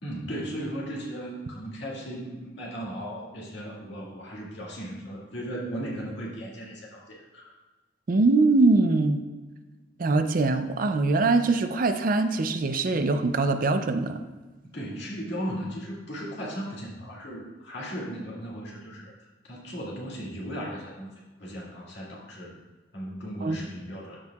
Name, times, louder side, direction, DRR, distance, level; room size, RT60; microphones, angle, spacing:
voice 1, 0.0-7.5 14.6-19.1 19.4-21.1 21.4-22.5 22.9-24.2, equal, 70° left, -4 dB, 2.0 m, -36 dB
voice 2, 8.1-9.2 10.0-14.2 23.4-23.6, right 3 dB, 50° right, 8 dB, 0.4 m, -22 dB
13.5 x 4.5 x 2.4 m, 1.2 s
head